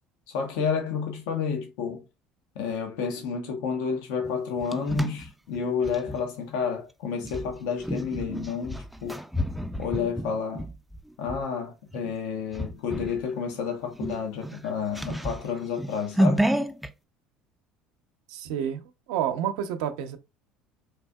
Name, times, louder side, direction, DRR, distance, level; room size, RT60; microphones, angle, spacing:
voice 1, 0.3-2.0 2.5-9.2 9.8-10.6 11.2-16.5, left 6 dB, 80° left, 0.9 m, -30 dB
sound 1, 4.2-6.2 7.2-11.4 11.9-12.2 12.5-13.2 13.5-13.6 13.9-16.9, equal, ahead, 0.4 m, -30 dB
voice 2, 18.3-18.8 19.1-20.2, right 9 dB, 85° right, 0.7 m, -29 dB
4.8 x 2.7 x 2.3 m
supercardioid pair, 100°, 3 cm